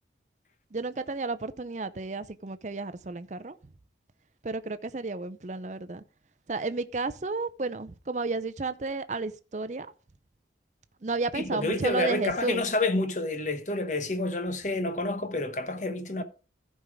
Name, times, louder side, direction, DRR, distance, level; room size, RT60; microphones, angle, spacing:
voice 1, 0.7-3.6 4.4-6.0 6.5-9.9 11.0-12.6, right 3 dB, 40° right, 0.6 m, -32 dB
voice 2, 11.3-16.2, left 2 dB, 45° left, 1.1 m, -29 dB
14.5 x 5.4 x 3.6 m
head